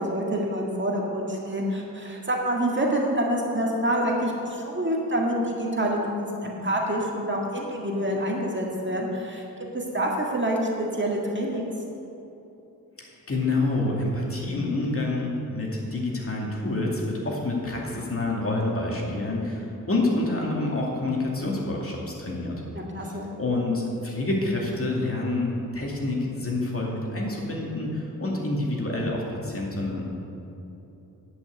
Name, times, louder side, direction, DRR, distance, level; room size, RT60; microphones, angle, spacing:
voice 1, 0.0-9.4 9.7-11.7 22.9-23.3, right 1 dB, 30° right, -1 dB, 1.9 m, -27 dB
voice 2, 13.0-22.6 23.0-30.1, left 2 dB, 40° left, -3 dB, 2.5 m, -28 dB
10.5 x 5.9 x 8.1 m, 2.9 s
cardioid pair, 65°, 35 cm